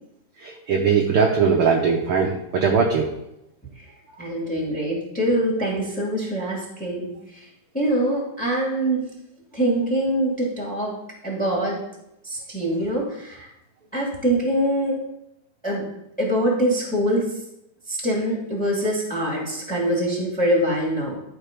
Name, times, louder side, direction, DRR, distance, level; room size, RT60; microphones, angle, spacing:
voice 1, 0.4-3.1, right 5 dB, 70° right, 1 dB, 1.3 m, -20 dB
voice 2, 4.2-7.1 7.7-9.0 9.5-10.9 11.2-11.8 12.2-13.5 13.9-15.0 15.6-15.8 16.2-17.3 17.9-21.2, right 1 dB, 5° left, -1 dB, 1.7 m, -24 dB
12.5 x 4.5 x 5.2 m, 0.84 s
omnidirectional pair, 3.6 m